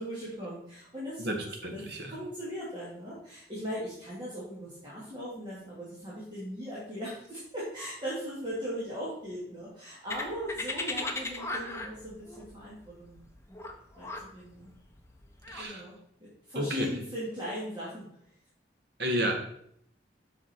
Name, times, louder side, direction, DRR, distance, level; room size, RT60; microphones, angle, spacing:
voice 1, 0.0-1.4 1.7-1.8 2.1-13.3 14.0-14.7 15.6-18.0, equal, 25° right, -9 dB, 2.4 m, -39 dB
voice 2, 1.2-2.1 15.5-15.9 16.5-16.9 19.0-19.4, right 1 dB, 65° right, 2 dB, 1.6 m, -31 dB
sound 1, 10.1-15.6, left 2 dB, 15° left, 0.8 m, -37 dB
7.7 x 5.9 x 4.4 m, 0.68 s
head